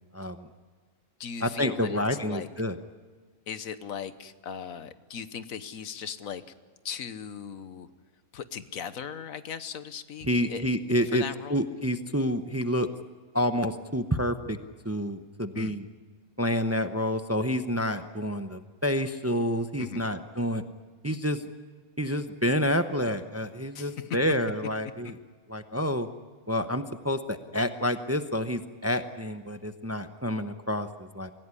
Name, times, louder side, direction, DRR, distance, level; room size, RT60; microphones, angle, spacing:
voice 1, 0.1-0.5 1.4-2.8 10.3-11.2 11.5-12.9 13.3-14.6 14.8-15.8 16.4-20.6 21.0-21.4 22.0-25.2 25.5-26.1 26.5-31.3, equal, 15° right, 9 dB, 0.7 m, -28 dB
voice 2, 1.2-2.5 3.5-6.4 6.8-7.9 8.3-10.7 11.1-11.6 15.5-15.8 19.8-20.0 23.7-24.2, left 7 dB, 85° left, 12 dB, 1.4 m, -38 dB
25.0 x 16.5 x 9.8 m, 1.4 s
omnidirectional pair, 1.4 m